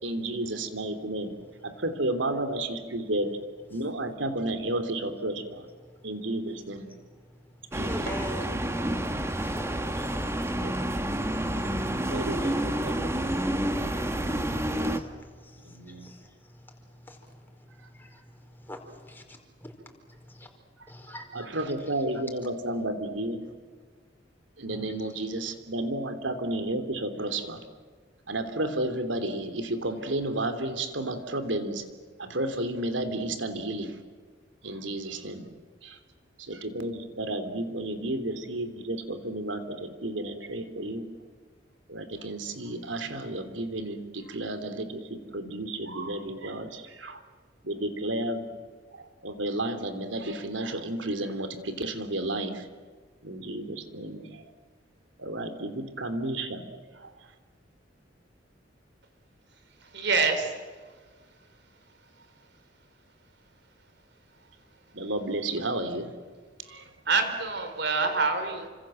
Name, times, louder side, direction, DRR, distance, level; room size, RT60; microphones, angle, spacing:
voice 1, 0.0-1.3 1.6-3.4 3.7-5.6 6.0-6.9 7.7-8.1 9.7-10.0 10.5-10.8 12.1-13.1 15.6-16.1 21.3-23.5 24.6-27.6 28.3-31.9 32.2-34.0 34.6-35.5 35.8-36.0 36.4-41.0 41.9-47.2 47.6-48.5 48.9-52.7 53.2-54.5 55.2-56.7 56.9-57.1 64.9-66.1 66.7-66.9, right 1 dB, 90° right, 3.1 m, -32 dB
sound 1, 7.7-15.0, right 1 dB, 15° right, 1.8 m, -29 dB
voice 2, 7.8-8.4 9.2-10.2 13.6-19.7 20.1-20.5 20.9-21.5 21.9-22.0 24.7-25.1, equal, 10° left, 4.9 m, -46 dB
voice 3, 59.8-60.9 67.1-68.7, right 4 dB, 65° right, 4.4 m, -27 dB
29.5 x 26.5 x 7.7 m
head